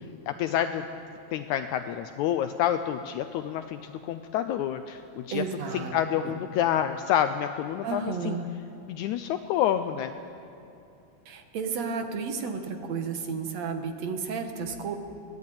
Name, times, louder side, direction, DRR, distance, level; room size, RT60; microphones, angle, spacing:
voice 1, 0.3-0.8 1.3-5.4 5.7-8.4 8.9-10.2, left 10 dB, 80° left, 8 dB, 1.9 m, -28 dB
voice 2, 5.3-6.4 7.8-8.5 11.3-15.0, right 5 dB, 60° right, 5 dB, 2.5 m, -32 dB
21.5 x 16.5 x 8.7 m, 2.7 s
omnidirectional pair, 3.6 m